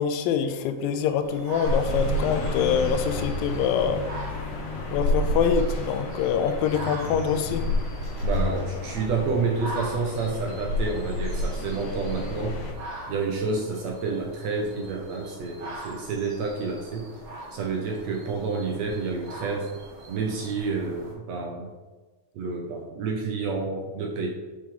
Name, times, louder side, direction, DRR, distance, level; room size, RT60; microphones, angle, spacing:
voice 1, 0.0-4.1 4.9-7.7, left 7 dB, 90° left, 9 dB, 2.3 m, -25 dB
sound 1, 1.2-21.1, right 1 dB, 45° right, 1.6 m, -42 dB
sound 2, 1.6-12.7, left 1 dB, 65° left, 1.9 m, -30 dB
voice 2, 8.2-12.6 13.1-17.1 17.5-19.7 20.1-21.7 22.3-24.3, right 4 dB, 75° right, 0 dB, 1.6 m, -29 dB
7.5 x 4.8 x 3.7 m, 1.2 s
omnidirectional pair, 3.9 m